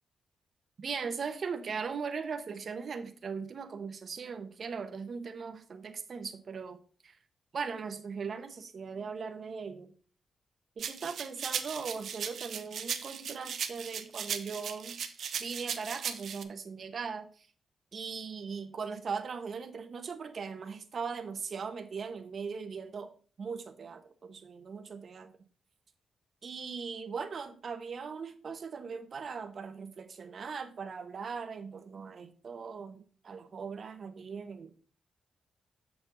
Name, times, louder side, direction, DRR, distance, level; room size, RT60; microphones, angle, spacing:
voice 1, 0.8-6.8 7.0-7.2 7.5-9.9 10.8-15.0 15.4-17.5 17.9-23.1 23.4-25.3 26.4-34.7, right 5 dB, 55° right, 1.1 m, -39 dB
sound 1, 10.8-16.4, right 7 dB, 75° right, 0.8 m, -37 dB
7.5 x 7.0 x 4.0 m
cardioid pair, 110°, 0 cm